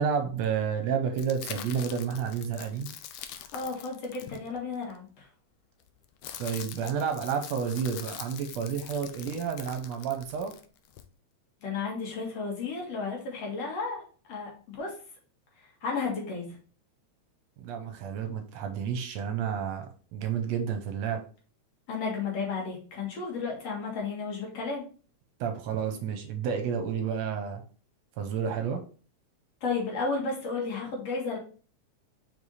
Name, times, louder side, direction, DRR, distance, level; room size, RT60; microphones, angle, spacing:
voice 1, 0.0-2.9 6.4-10.5 17.6-21.2 25.4-27.6 28.2-28.8, right 7 dB, 75° right, 6 dB, 1.8 m, -30 dB
sound 1, 1.2-4.9 5.8-11.1, left 10 dB, 85° left, 1.3 m, -44 dB
voice 2, 3.5-5.3 11.6-14.0 14.3-14.9 15.8-16.5 21.9-24.8 29.6-31.4, left 4 dB, 60° left, -1 dB, 2.7 m, -33 dB
5.2 x 4.8 x 4.1 m, 0.39 s
omnidirectional pair, 3.3 m